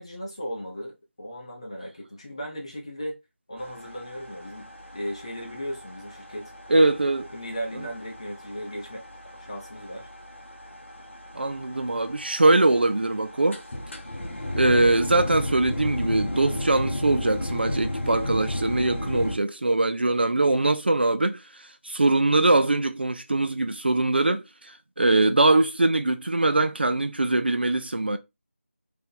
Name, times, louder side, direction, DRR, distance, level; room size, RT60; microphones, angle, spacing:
voice 1, 0.0-3.2 3.5-6.5 7.3-9.1 9.4-10.1, equal, 25° left, 0.7 m, -36 dB
sound 1, 3.6-19.4, left 1 dB, 60° left, 0.8 m, -34 dB
voice 2, 6.7-7.3 11.3-13.6 14.6-28.2, right 2 dB, 50° right, 0.4 m, -22 dB
2.6 x 2.1 x 3.9 m
figure-of-eight pair, 175°, 7 cm